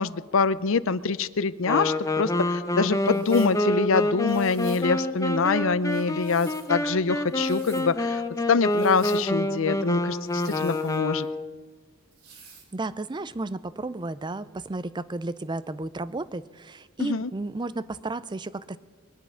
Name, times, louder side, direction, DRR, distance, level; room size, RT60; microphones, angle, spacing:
voice 1, 0.0-11.3 17.0-17.3, left 4 dB, 65° left, 16 dB, 0.6 m, -25 dB
Wind instrument woodwind instrument, 1.6-11.5, left 1 dB, 15° left, 0.7 m, -27 dB
sound 1, 3.0-3.6 4.3-4.9 5.9-6.7 7.3-7.9 8.7-9.3 10.2-11.3 12.1-12.7, right 5 dB, 90° right, 3.3 m, -50 dB
voice 2, 12.7-18.8, right 2 dB, 20° right, 15 dB, 0.5 m, -33 dB
21.5 x 10.5 x 5.7 m, 1.5 s
head